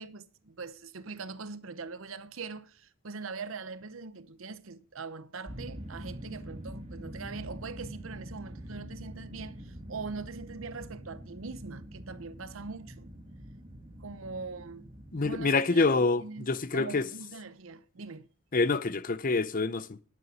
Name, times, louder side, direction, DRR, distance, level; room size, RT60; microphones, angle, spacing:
voice 1, 0.0-13.1 14.0-14.8 15.2-15.9 16.2-18.3, right 4 dB, 70° right, 0.8 m, -42 dB
sound 1, 5.5-15.5, equal, 30° right, 1.8 m, -45 dB
voice 2, 15.1-17.0 18.5-20.0, left 3 dB, 40° left, 0.6 m, -26 dB
11.0 x 9.3 x 5.0 m
head